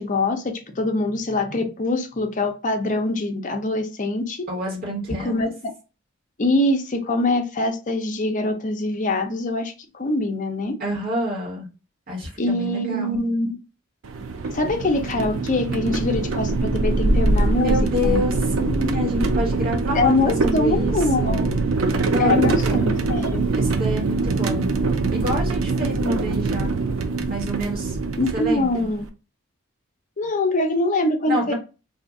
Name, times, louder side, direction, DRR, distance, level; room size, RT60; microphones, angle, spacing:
voice 1, 0.0-4.4 5.2-5.5 6.4-10.8 12.4-13.6 14.5-18.2 19.9-21.4 22.2-23.5 28.2-29.0 30.2-31.5, left 2 dB, 40° left, 5 dB, 0.6 m, -23 dB
voice 2, 4.5-5.5 10.8-11.7 12.1-13.2 17.5-21.6 22.0-22.9 23.5-24.8 25.1-26.7 27.3-28.0 28.3-28.9 31.2-31.5, left 1 dB, 45° right, -3 dB, 1.5 m, -28 dB
sound 1, 14.0-29.0, right 3 dB, 85° right, 0.5 m, -23 dB
2.7 x 2.5 x 3.6 m, 0.31 s
head